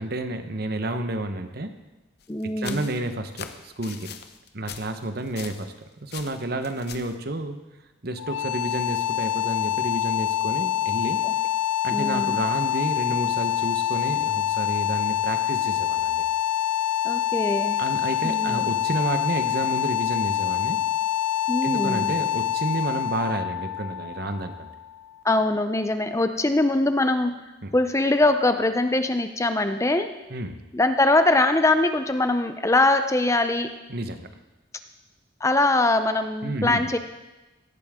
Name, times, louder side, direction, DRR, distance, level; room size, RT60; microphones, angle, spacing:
voice 1, 0.0-1.8 2.6-4.2 4.5-5.7 6.0-7.6 8.0-11.2 11.8-16.2 17.8-20.8 21.6-24.7 27.6-27.7 30.3-30.6 33.9-34.3 36.4-36.9, right 1 dB, 55° right, 8 dB, 1.1 m, -30 dB
sound 1, 2.2-5.8 6.1-7.2, left 7 dB, 55° left, 0.9 m, -41 dB
voice 2, 2.3-2.9 11.2-11.3 11.9-12.4 17.0-17.8 18.2-18.7 21.5-22.1 25.2-27.4 27.7-30.1 30.7-33.7 35.4-37.0, left 2 dB, 15° left, 8 dB, 0.6 m, -22 dB
sound 2, 8.2-25.1, left 11 dB, 70° left, 0.5 m, -26 dB
18.0 x 14.0 x 3.7 m, 1.1 s
head